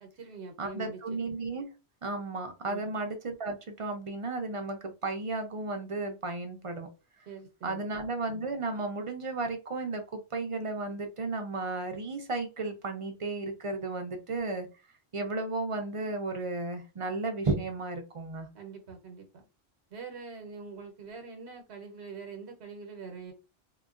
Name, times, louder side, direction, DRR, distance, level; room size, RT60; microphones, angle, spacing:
voice 1, 0.0-1.2 2.7-2.9 7.3-7.9 18.5-19.5 19.9-23.3, right 4 dB, 80° right, 4 dB, 1.0 m, -44 dB
voice 2, 0.6-1.7 2.0-6.9 7.6-14.7 15.1-18.5, right 3 dB, 45° right, 5 dB, 0.4 m, -34 dB
3.8 x 2.1 x 2.3 m, 0.29 s
omnidirectional pair, 1.1 m